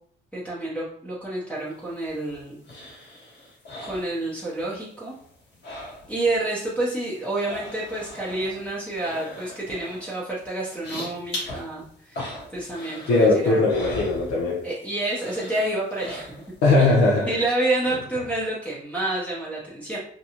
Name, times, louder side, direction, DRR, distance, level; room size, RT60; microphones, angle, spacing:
voice 1, 0.3-2.6 3.8-5.2 6.1-13.6 14.6-16.3 16.8-16.9 17.3-20.0, right 2 dB, 5° left, -8 dB, 0.8 m, -29 dB
sound 1, 1.7-4.8 5.0-6.4 6.6-14.8 15.1-16.7 17.1-17.2, left 1 dB, 60° left, 1.1 m, -40 dB
voice 2, 13.1-14.6 16.6-17.3, left 3 dB, 80° left, -4 dB, 0.6 m, -19 dB
2.7 x 2.2 x 2.9 m, 0.62 s
cardioid pair, 90°, 20 cm